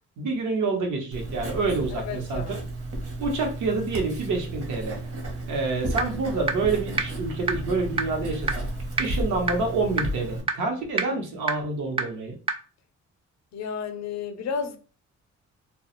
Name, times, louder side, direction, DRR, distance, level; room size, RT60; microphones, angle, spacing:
voice 1, 0.2-2.4 3.2-5.0 5.5-8.6 9.0-12.4, right 3 dB, 80° right, 0.9 m, -27 dB
Writing, 1.1-10.4, right 1 dB, 50° right, 0.9 m, -33 dB
voice 2, 2.0-2.6 13.5-14.8, left 6 dB, 65° left, 0.5 m, -32 dB
sound 1, 6.0-6.1 6.5-6.6 7.0-7.1 7.5-7.6 8.0-8.1 8.5-8.6 9.0-9.1 9.5-9.6 10.0-10.1 10.5-10.6 11.0-11.1 11.5-11.6 12.0-12.1 12.5-12.6, right 3 dB, 20° right, 0.3 m, -23 dB
2.2 x 2.0 x 2.9 m
cardioid pair, 90°, 30 cm